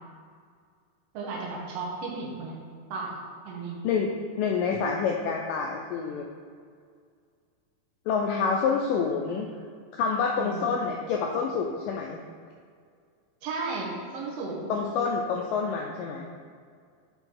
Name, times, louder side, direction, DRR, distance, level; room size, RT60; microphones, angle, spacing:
voice 1, 1.1-2.6 2.9-3.2 3.4-3.8 10.4-10.7 13.4-14.7, right 3 dB, 80° right, -2 dB, 1.4 m, -34 dB
voice 2, 4.4-6.2 8.1-9.5 10.0-12.2 14.7-16.2, left 5 dB, 85° left, 1 dB, 1.9 m, -27 dB
9.0 x 4.3 x 3.7 m, 2.1 s
omnidirectional pair, 4.4 m